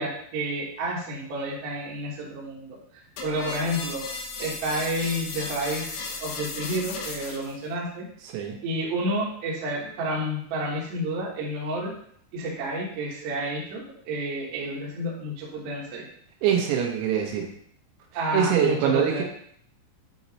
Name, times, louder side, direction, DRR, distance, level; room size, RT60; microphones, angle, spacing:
voice 1, 0.0-2.8 3.2-4.0 4.4-8.0 8.6-11.9 12.3-16.1 18.1-19.2, right 1 dB, 65° right, -4 dB, 2.6 m, -30 dB
sound 1, 3.2-7.6, left 4 dB, 75° left, 3.1 m, -35 dB
voice 2, 8.2-8.6 16.4-17.5 18.3-19.2, right 8 dB, 85° right, 1 dB, 3.7 m, -24 dB
8.6 x 3.1 x 4.1 m, 0.66 s
omnidirectional pair, 5.8 m